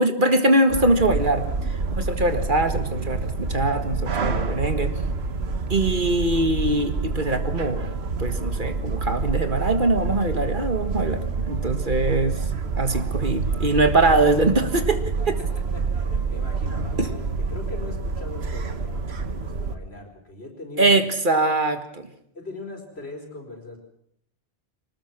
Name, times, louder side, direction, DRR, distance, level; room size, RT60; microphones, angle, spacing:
voice 1, 0.0-4.9 5.7-7.9 8.2-12.4 12.8-15.1 17.0-17.1 20.8-22.1, right 2 dB, 55° right, 8 dB, 1.9 m, -22 dB
sound 1, 0.7-19.8, right 4 dB, 80° right, 1.6 m, -27 dB
voice 2, 15.2-21.0 22.3-23.8, left 2 dB, 85° left, 3 dB, 4.9 m, -40 dB
24.5 x 19.5 x 6.1 m, 0.70 s
omnidirectional pair, 1.1 m